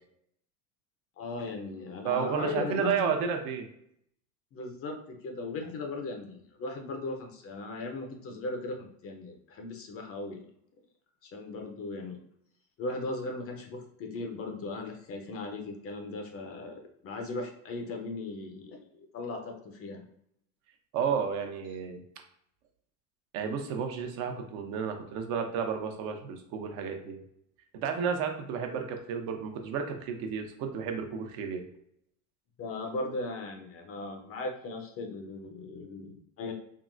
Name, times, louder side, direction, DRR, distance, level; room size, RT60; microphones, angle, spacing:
voice 1, 1.2-3.2 4.5-10.4 11.2-12.2 12.8-20.0 32.6-36.5, left 2 dB, 30° left, 3 dB, 0.5 m, -38 dB
voice 2, 2.0-3.7 20.9-22.0 23.3-27.2 27.8-31.6, right 6 dB, 60° right, 4 dB, 0.7 m, -32 dB
3.7 x 2.0 x 2.5 m, 0.72 s
supercardioid pair, 110°, 43 cm